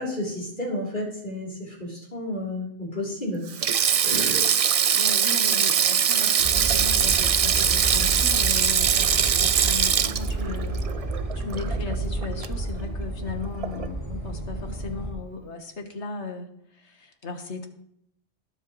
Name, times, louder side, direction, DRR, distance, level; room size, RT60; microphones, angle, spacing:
voice 1, 0.0-3.4 4.0-4.4, left 1 dB, 45° left, -4 dB, 3.9 m, -31 dB
Sink (filling or washing), 3.5-11.9 12.2-12.5 13.6-13.9, right 8 dB, 60° right, 0.3 m, -22 dB
voice 2, 4.9-10.8 11.4-17.7, left 4 dB, 80° left, 4 dB, 1.7 m, -36 dB
sound 1, 6.4-15.1, right 2 dB, 85° right, 3.7 m, -31 dB
20.0 x 7.7 x 3.2 m, 0.72 s
omnidirectional pair, 1.2 m